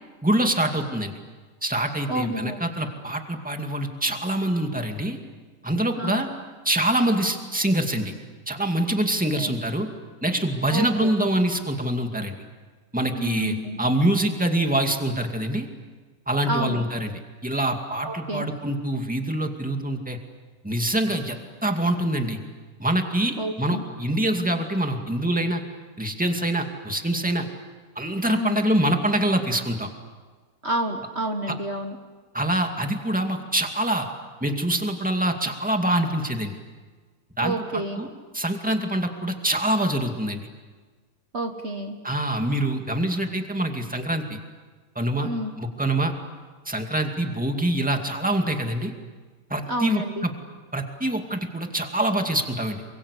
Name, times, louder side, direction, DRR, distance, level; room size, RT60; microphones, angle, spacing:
voice 1, 0.2-1.1 1.6-5.2 5.6-6.3 6.6-8.1 8.5-9.9 10.2-12.4 12.9-15.7 16.3-17.1 17.4-20.2 20.6-22.4 22.8-25.6 26.0-27.5 28.0-29.9 31.5-31.6 32.3-34.1 34.4-36.5 37.4-38.1 38.3-40.4 42.0-44.4 45.0-45.3 45.6-46.1 46.7-48.9 49.5-50.3 50.7-52.8, right 1 dB, 5° right, 4 dB, 2.3 m, -25 dB
voice 2, 2.1-2.6 6.0-6.3 9.3-9.5 10.7-11.1 13.1-13.8 16.5-16.8 18.0-18.5 23.4-23.8 28.3-28.7 30.6-32.0 37.4-38.0 41.3-42.0 45.2-45.5 49.7-50.3, right 1 dB, 45° right, 4 dB, 1.8 m, -29 dB
28.0 x 24.5 x 8.4 m, 1.4 s
omnidirectional pair, 1.6 m